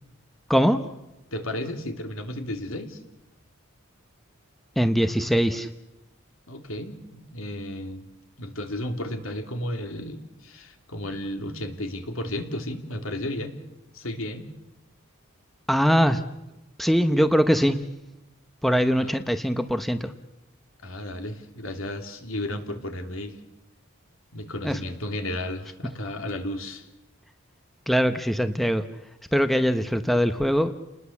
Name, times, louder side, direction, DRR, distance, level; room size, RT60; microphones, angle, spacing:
voice 1, 1.3-3.0 6.5-8.1 8.4-13.6 13.9-14.5 18.9-19.1 20.8-23.4 24.3-26.9, left 1 dB, 75° left, 6 dB, 2.9 m, -33 dB
voice 2, 4.8-5.7 15.7-16.2 16.8-17.8 18.6-20.1 24.6-24.8 27.9-28.8 29.3-30.7, equal, ahead, 9 dB, 0.8 m, -22 dB
30.0 x 20.0 x 7.2 m, 0.93 s
head